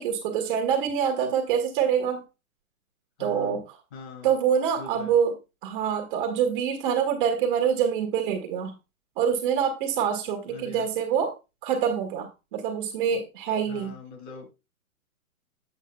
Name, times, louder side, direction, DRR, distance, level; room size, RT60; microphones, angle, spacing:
voice 1, 0.0-2.2 3.2-3.6 4.2-5.3 5.6-8.7 9.2-11.3 11.6-13.9, right 8 dB, 35° right, 1.6 m, -25 dB
voice 2, 3.2-3.6 3.9-4.3 4.8-5.1 10.5-10.9 13.7-14.5, left 4 dB, 50° left, 3.2 m, -42 dB
8.4 x 7.8 x 2.2 m
hypercardioid pair, 135°, 43 cm